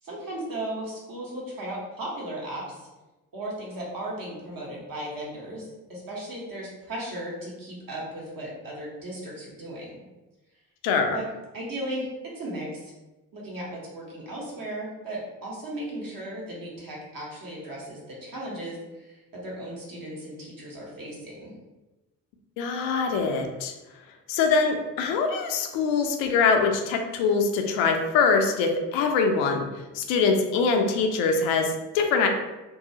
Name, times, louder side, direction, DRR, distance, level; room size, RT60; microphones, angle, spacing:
voice 1, 0.0-2.9 3.3-10.0 11.1-11.3 11.5-12.9 13.3-21.5, right 1 dB, 45° right, -4 dB, 1.2 m, -36 dB
voice 2, 10.8-11.2 22.6-23.7 24.3-29.7 29.9-32.3, left 5 dB, 70° left, 4 dB, 0.6 m, -23 dB
2.7 x 2.3 x 2.7 m, 1.1 s
hypercardioid pair, 45°, 47 cm